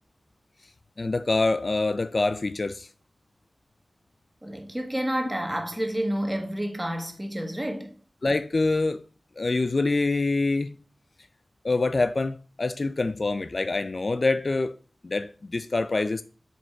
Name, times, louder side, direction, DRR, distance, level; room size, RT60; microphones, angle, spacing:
voice 1, 1.0-2.9 8.2-9.0 9.4-10.8 11.6-14.8 15.0-16.2, left 3 dB, 50° left, 0.4 m, -25 dB
voice 2, 4.4-7.9, equal, 15° right, 1.5 m, -29 dB
7.8 x 5.2 x 4.9 m
wide cardioid pair, 90°, 0 cm